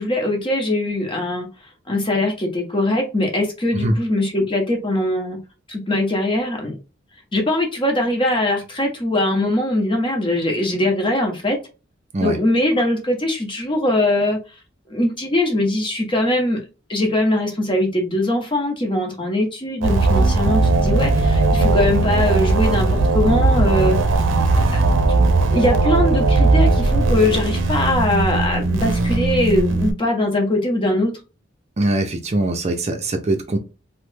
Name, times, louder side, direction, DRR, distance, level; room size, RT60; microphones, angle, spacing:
voice 1, 0.0-1.5 1.9-5.4 5.7-6.8 7.3-11.6 12.2-14.4 14.9-16.6 16.9-24.0 24.6-24.9 25.5-31.1, left 1 dB, 25° left, 2 dB, 0.9 m, -21 dB
sound 1, 19.8-29.9, right 3 dB, 85° right, 0.5 m, -18 dB
voice 2, 31.8-33.6, right 2 dB, 35° right, 5 dB, 0.5 m, -22 dB
3.1 x 2.1 x 3.2 m, 0.30 s
head